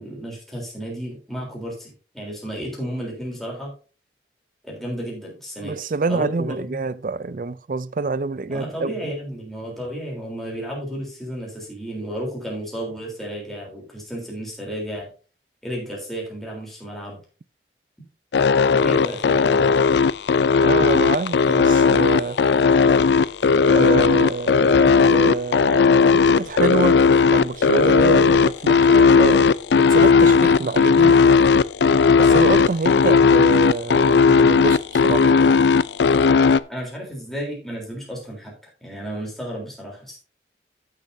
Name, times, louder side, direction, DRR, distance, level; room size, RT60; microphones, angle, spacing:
voice 1, 0.0-3.7 4.6-6.8 8.5-15.1 15.6-17.2 18.7-19.7 36.7-40.2, equal, ahead, 3.7 m, -32 dB
voice 2, 5.6-8.9 20.6-22.4 23.6-27.0 27.3-29.5 29.8-31.2 32.2-35.4, right 4 dB, 50° right, 0.4 m, -26 dB
sound 1, 18.3-36.6, left 5 dB, 80° left, 0.4 m, -16 dB
14.5 x 6.8 x 2.7 m
head